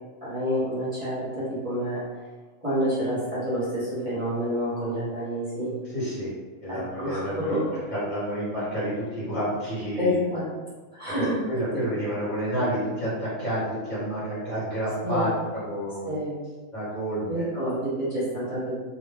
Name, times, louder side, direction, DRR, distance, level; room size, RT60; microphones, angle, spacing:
voice 1, 0.2-2.0 2.6-5.7 6.7-7.6 10.0-10.4 10.9-11.4 15.0-15.3 16.1-16.3 17.3-18.8, equal, 35° right, -11 dB, 1.0 m, -28 dB
voice 2, 5.9-6.3 6.6-10.2 11.2-16.2 16.7-17.5, equal, 40° left, -10 dB, 1.1 m, -29 dB
2.4 x 2.1 x 3.4 m, 1.3 s
omnidirectional pair, 1.3 m